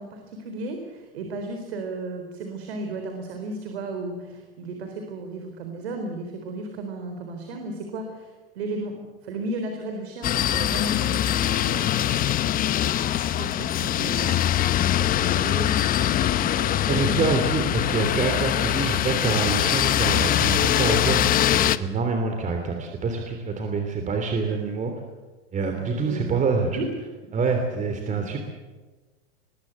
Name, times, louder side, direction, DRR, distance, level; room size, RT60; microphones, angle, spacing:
voice 1, 0.0-9.0 9.2-14.4 14.7-17.1 18.3-18.4 24.4-24.5 25.8-26.4 26.8-26.9 27.4-27.5 28.1-28.3, right 2 dB, 75° right, 4 dB, 4.1 m, -35 dB
sound 1, 10.2-21.8, left 12 dB, 25° left, 0.9 m, -23 dB
voice 2, 16.9-24.9 25.5-26.8 27.3-28.4, right 4 dB, 25° right, 4 dB, 3.3 m, -26 dB
23.5 x 21.0 x 8.3 m, 1.3 s
hypercardioid pair, 125°, 31 cm